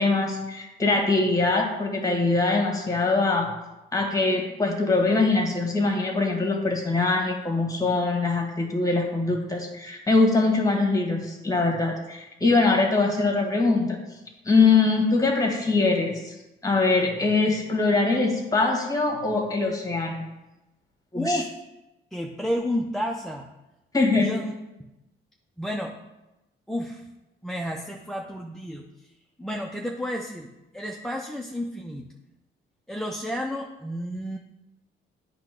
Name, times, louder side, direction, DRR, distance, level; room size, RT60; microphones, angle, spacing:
voice 1, 0.0-3.5 3.9-14.0 14.4-16.3 16.6-20.3 21.1-21.4 23.9-24.3, left 3 dB, 15° left, 2 dB, 1.6 m, -23 dB
voice 2, 21.1-21.5 22.1-23.5 24.2-24.5 25.6-25.9 26.7-27.1 27.4-29.1 29.4-32.1 32.9-34.4, equal, ahead, 1 dB, 0.5 m, -31 dB
8.3 x 3.0 x 5.8 m, 0.97 s
cardioid pair, 90°, 20 cm